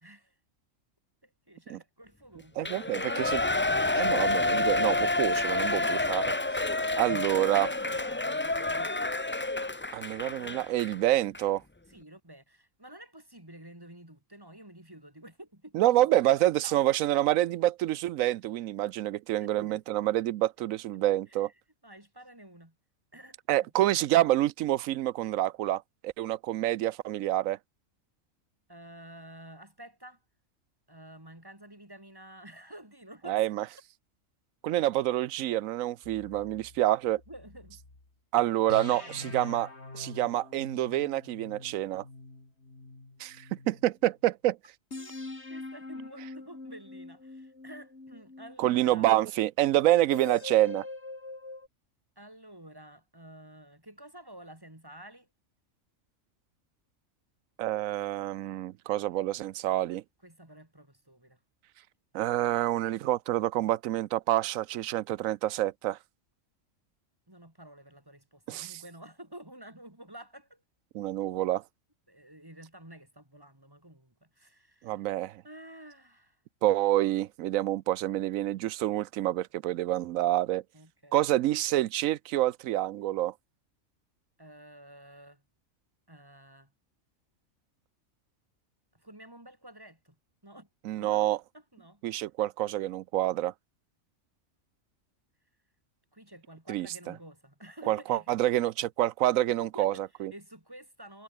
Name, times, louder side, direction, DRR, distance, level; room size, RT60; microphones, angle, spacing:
voice 1, 0.0-0.3 1.2-3.2 6.7-6.8 7.4-8.9 11.9-16.1 16.6-16.8 19.4-19.8 21.3-21.5 21.8-22.7 23.1-23.7 28.7-30.2 30.9-33.4 37.3-37.8 38.7-39.4 44.9-45.2 45.5-49.1 52.2-55.3 60.2-61.4 67.3-70.6 72.1-75.0 75.4-76.4 80.7-81.2 84.4-85.4 86.1-86.7 88.9-90.1 90.4-90.7 91.0-91.3 91.5-92.0 96.1-98.3 99.6-100.0 100.3-101.2, right 1 dB, 15° right, 3.4 m, -50 dB
Shout / Cheering, 2.6-10.9 11.3-11.4, left 2 dB, 15° left, 0.4 m, -29 dB
voice 2, 2.6-3.4 3.9-6.3 7.0-7.7 9.9-11.6 15.7-21.5 23.5-27.6 33.3-33.6 34.6-37.2 38.3-39.7 39.9-42.0 43.2-44.6 48.6-50.8 57.6-60.0 62.1-66.0 68.5-68.7 70.9-71.6 74.8-75.4 76.6-80.6 81.1-83.3 90.8-91.4 92.0-93.5 96.7-97.1 97.9-100.3, right 14 dB, 80° right, 1.0 m, -27 dB
sound 1, 36.0-38.1 38.7-43.9 44.9-49.2 50.1-51.7, left 2 dB, 55° left, 4.0 m, -44 dB
omnidirectional pair, 1.4 m